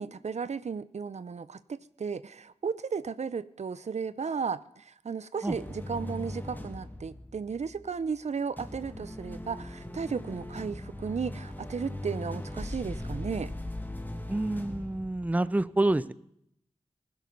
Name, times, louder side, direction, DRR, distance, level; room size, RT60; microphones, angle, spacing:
voice 1, 0.0-13.5, right 5 dB, 75° right, 0.6 m, -34 dB
sound 1, 5.5-8.2 8.6-15.3, left 1 dB, 15° left, 1.5 m, -39 dB
voice 2, 14.3-16.1, right 2 dB, 15° right, 0.5 m, -27 dB
20.0 x 11.5 x 5.4 m
wide cardioid pair, 75°, 12 cm